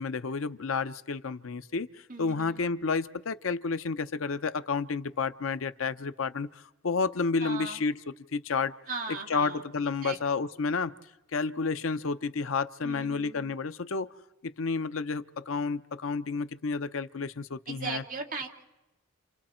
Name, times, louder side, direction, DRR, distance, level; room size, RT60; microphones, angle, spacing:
voice 1, 0.0-1.9 2.2-8.0 8.3-8.7 9.3-10.9 11.3-14.1 14.4-18.0, left 4 dB, 85° left, 12 dB, 0.7 m, -30 dB
voice 2, 2.1-2.6 7.4-7.8 8.9-9.6 10.0-10.2 12.8-13.6 17.7-18.5, right 4 dB, 45° right, 1 dB, 2.5 m, -38 dB
29.5 x 28.0 x 4.4 m, 1.0 s
head